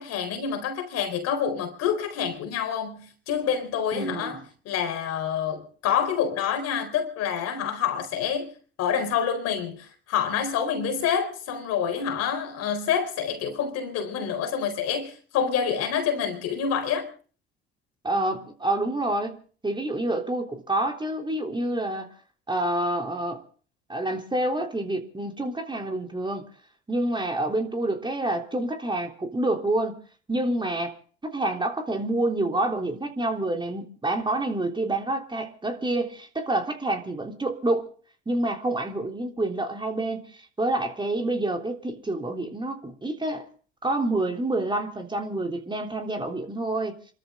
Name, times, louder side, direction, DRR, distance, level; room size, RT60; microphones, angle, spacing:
voice 1, 0.0-17.1, left 7 dB, 60° left, 4.3 m, -27 dB
voice 2, 3.9-4.3 18.0-22.1 22.5-23.4 23.9-26.4 26.9-30.0 30.3-31.0 31.2-37.9 38.3-43.5 43.8-47.0, right 2 dB, 15° right, 3.4 m, -28 dB
28.0 x 13.5 x 3.8 m
hypercardioid pair, 65°, 29 cm